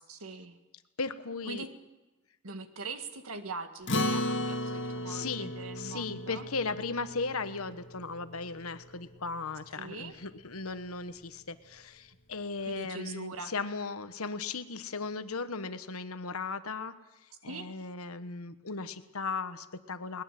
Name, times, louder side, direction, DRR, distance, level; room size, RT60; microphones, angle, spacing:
voice 1, 0.1-0.6 1.5-1.7 2.4-6.5 9.7-10.2 12.7-13.5 17.5-17.7, right 3 dB, 70° right, 8 dB, 1.9 m, -42 dB
voice 2, 1.0-1.7 5.1-16.9 17.4-20.2, left 4 dB, 75° left, 11 dB, 1.3 m, -37 dB
Acoustic guitar, 3.9-8.6, left 1 dB, 55° left, 1.9 m, -35 dB
21.0 x 20.5 x 7.6 m, 1.1 s
head